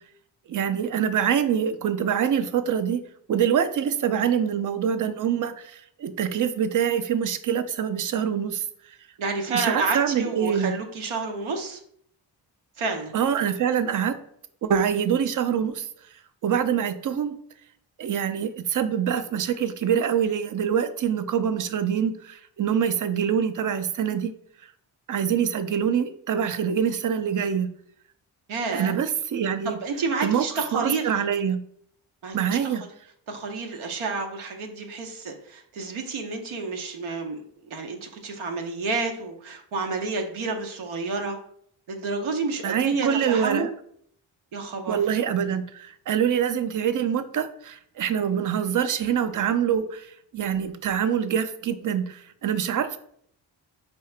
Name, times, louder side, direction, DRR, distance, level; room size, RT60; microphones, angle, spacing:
voice 1, 0.5-3.0 3.3-9.0 9.5-10.7 13.1-14.2 14.6-15.9 16.4-17.4 18.0-24.3 25.1-27.7 28.7-29.7 30.2-30.5 30.7-31.6 32.3-32.8 42.6-43.7 44.9-53.0, right 8 dB, 40° right, 12 dB, 0.5 m, -25 dB
voice 2, 9.2-11.8 12.8-13.1 28.5-28.9 29.6-31.1 32.2-32.8 33.3-41.4 41.9-43.7 44.5-45.0, right 4 dB, 75° right, 3 dB, 0.8 m, -30 dB
4.6 x 2.9 x 3.2 m, 0.65 s
cardioid pair, 55°, 49 cm